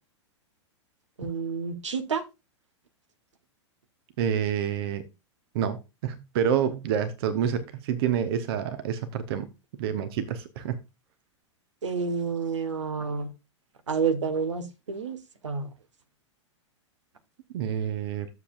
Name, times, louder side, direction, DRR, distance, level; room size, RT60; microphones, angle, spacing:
voice 1, 1.2-2.2 11.8-13.3 13.9-15.2 15.4-15.7, right 5 dB, 80° right, 1.5 m, -29 dB
voice 2, 4.2-5.0 5.5-9.5 9.8-10.8 17.5-18.3, right 8 dB, 55° right, 1.2 m, -28 dB
11.0 x 7.1 x 2.5 m
figure-of-eight pair, 100°, 15 cm